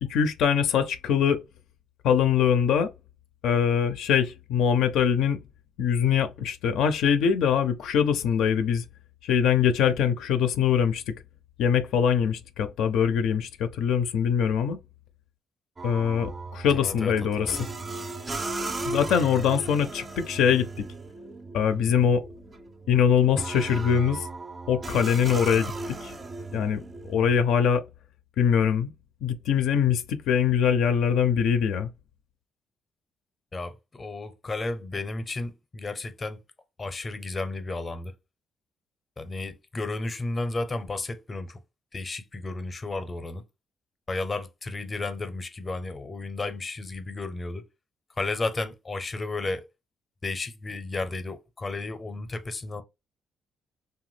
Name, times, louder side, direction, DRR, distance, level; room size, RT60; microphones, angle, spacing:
voice 1, 0.0-1.4 2.0-2.9 3.4-5.4 5.8-8.8 9.2-11.0 11.6-14.8 15.8-17.7 18.9-20.9 21.5-22.2 22.9-24.3 24.7-26.1 26.5-27.8 28.4-28.9 29.2-31.9, left 7 dB, 85° left, 0.4 m, -23 dB
sound 1, 15.8-27.4, right 3 dB, 25° right, 0.4 m, -36 dB
voice 2, 16.7-17.6 33.5-36.4 36.8-38.1 39.2-41.6 41.9-43.4 44.1-47.7 48.2-49.7 50.2-52.8, left 2 dB, 30° left, 0.6 m, -33 dB
2.8 x 2.2 x 3.2 m
cardioid pair, 90°, 0 cm